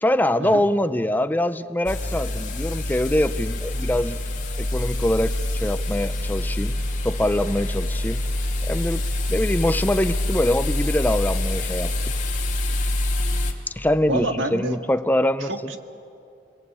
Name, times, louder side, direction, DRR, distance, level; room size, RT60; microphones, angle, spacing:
voice 1, 0.0-4.2 4.6-6.8 7.0-8.2 8.7-9.0 9.3-11.9 13.8-15.7, left 1 dB, 10° left, 12 dB, 0.5 m, -23 dB
sound 1, 1.9-13.5, left 1 dB, 40° left, 2.8 m, -26 dB
voice 2, 14.1-14.8 15.4-15.8, right 2 dB, 85° right, 5 dB, 1.9 m, -28 dB
30.0 x 21.5 x 8.8 m, 2.7 s
head